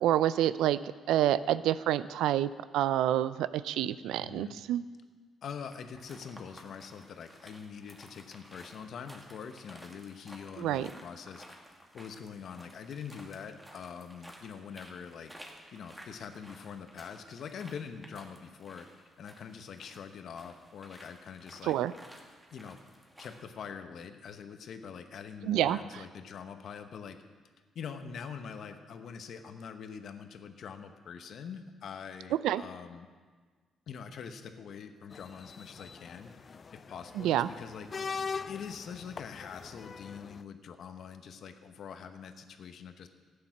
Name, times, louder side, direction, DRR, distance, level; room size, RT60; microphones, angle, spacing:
voice 1, 0.0-0.8 1.1-4.8 10.6-10.9 21.7-21.9 25.5-25.8 32.4-32.6 37.2-37.5, right 12 dB, 90° right, 16 dB, 0.4 m, -28 dB
voice 2, 4.2-4.6 5.4-11.4 11.9-15.3 15.7-18.9 19.2-21.8 22.5-22.8 23.2-27.2 27.7-33.1 33.9-36.3 36.9-37.9 38.5-43.1, left 6 dB, 65° left, 8 dB, 1.0 m, -44 dB
sound 1, 5.6-23.5, equal, 5° right, 1.8 m, -54 dB
sound 2, 35.1-40.4, left 5 dB, 40° left, 0.3 m, -42 dB
12.5 x 8.7 x 5.9 m, 1.5 s
cardioid pair, 90°, 0 cm